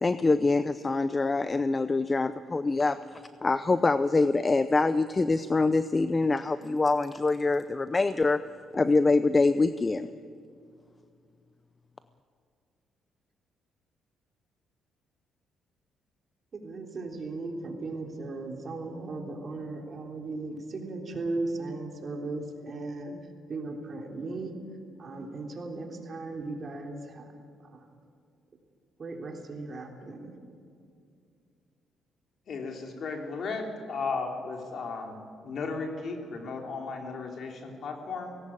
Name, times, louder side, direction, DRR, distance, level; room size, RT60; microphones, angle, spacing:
voice 1, 0.0-8.4 8.7-10.1, left 3 dB, 25° left, 13 dB, 0.6 m, -25 dB
voice 2, 16.5-23.2 23.5-24.6 25.0-27.3 27.7-27.9 29.0-30.3, right 2 dB, 45° right, 2 dB, 3.5 m, -37 dB
voice 3, 32.5-35.2 35.4-38.4, left 4 dB, 60° left, 3 dB, 3.4 m, -35 dB
18.5 x 17.0 x 8.9 m, 2.4 s
cardioid pair, 90°, 0 cm